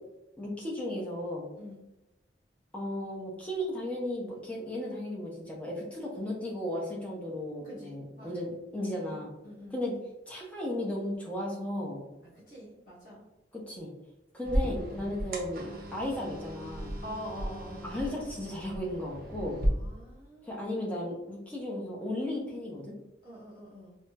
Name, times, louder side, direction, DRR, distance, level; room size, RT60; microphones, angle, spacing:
voice 1, 0.4-1.5 2.7-9.3 9.7-9.9 10.3-12.0 13.7-13.9 14.3-17.0 17.8-19.6 20.4-23.0, left 1 dB, 5° left, -3 dB, 0.6 m, -35 dB
voice 2, 7.6-8.3 8.9-9.8 12.5-13.2 17.0-17.9 19.6-20.9 23.2-23.9, equal, 45° left, -8 dB, 1.2 m, -45 dB
sound 1, 14.4-19.7, equal, 50° right, 0.5 m, -35 dB
4.1 x 2.0 x 2.2 m, 0.98 s
head